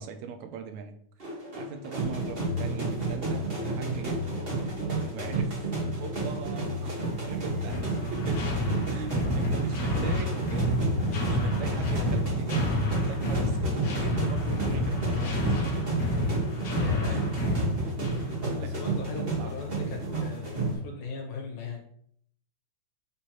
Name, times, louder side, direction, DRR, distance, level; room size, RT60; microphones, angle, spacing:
voice 1, 0.0-4.3 5.1-5.6 6.0-16.2 17.0-17.3 18.2-19.5, right 5 dB, 80° right, 7 dB, 1.7 m, -41 dB
sound 1, 1.2-20.7, right 2 dB, 45° right, 0.7 m, -31 dB
Bowed string instrument, 6.8-12.9, right 5 dB, 60° right, 1.2 m, -47 dB
sound 2, 7.7-18.4, left 1 dB, 50° left, 1.3 m, -29 dB
voice 2, 16.7-17.2 18.4-21.8, left 4 dB, 80° left, 1 dB, 2.8 m, -38 dB
7.9 x 4.4 x 3.0 m, 0.66 s
omnidirectional pair, 3.4 m